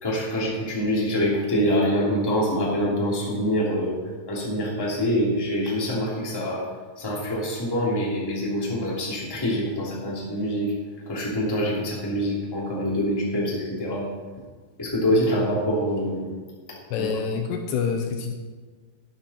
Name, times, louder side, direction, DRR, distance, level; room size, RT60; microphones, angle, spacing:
voice 1, 0.0-4.0 4.3-6.7 7.0-10.7 11.1-14.1 14.8-16.3 17.0-17.1, equal, 5° left, -5 dB, 2.0 m, -25 dB
voice 2, 16.9-18.3, left 6 dB, 80° left, 4 dB, 2.8 m, -27 dB
12.0 x 11.5 x 4.3 m, 1.4 s
omnidirectional pair, 5.2 m